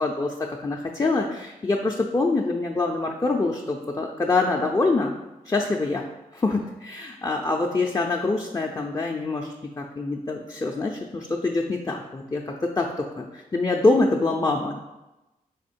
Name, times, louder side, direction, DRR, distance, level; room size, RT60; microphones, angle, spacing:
voice 1, 0.0-5.1 5.5-6.1 6.3-14.8, left 3 dB, 20° left, 0 dB, 0.4 m, -25 dB
3.6 x 3.0 x 4.2 m, 1.0 s
cardioid pair, 80°, 15 cm